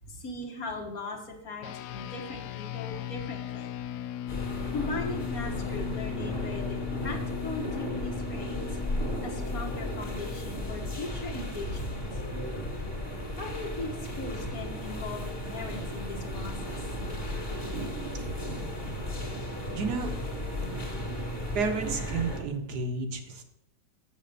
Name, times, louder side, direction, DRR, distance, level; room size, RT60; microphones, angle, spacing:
voice 1, 0.1-1.7 1.9-3.7 4.7-6.8 7.0-8.6 9.2-12.2 13.4-16.8, left 2 dB, 55° left, 0 dB, 1.9 m, -39 dB
sound 1, 1.6-11.3, left 12 dB, 70° left, 1.0 m, -38 dB
sound 2, 4.3-22.4, equal, 30° left, 2.2 m, -35 dB
voice 2, 19.7-20.1 21.5-23.4, right 4 dB, 65° right, 5 dB, 1.5 m, -31 dB
7.4 x 6.7 x 6.7 m, 0.83 s
omnidirectional pair, 1.9 m